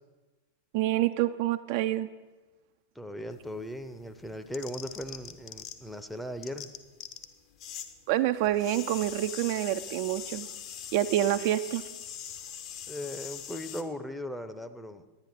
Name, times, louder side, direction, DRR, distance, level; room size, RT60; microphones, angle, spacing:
voice 1, 0.7-2.1 8.1-10.5 10.9-11.8, right 14 dB, 50° right, 10 dB, 0.3 m, -27 dB
voice 2, 3.0-6.7 12.9-15.0, equal, 5° left, 9 dB, 0.6 m, -38 dB
sound 1, 3.3-6.0 6.3-7.9 8.2-13.8, left 9 dB, 40° left, 0.7 m, -42 dB
10.0 x 9.8 x 4.4 m, 1.2 s
figure-of-eight pair, 90°, 0 cm